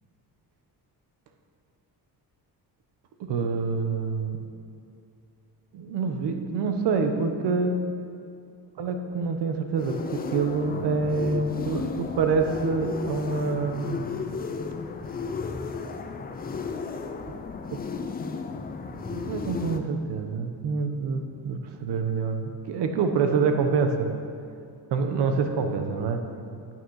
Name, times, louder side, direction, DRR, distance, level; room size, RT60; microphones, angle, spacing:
voice 1, 3.2-4.4 5.7-7.8 8.8-14.1 17.7-17.8 18.9-24.1 24.9-26.2, right 4 dB, 75° right, 6 dB, 1.1 m, -26 dB
sound 1, 9.8-19.8, left 4 dB, 25° left, 0.4 m, -34 dB
9.2 x 9.0 x 6.4 m, 2.5 s
cardioid pair, 170°, 41 cm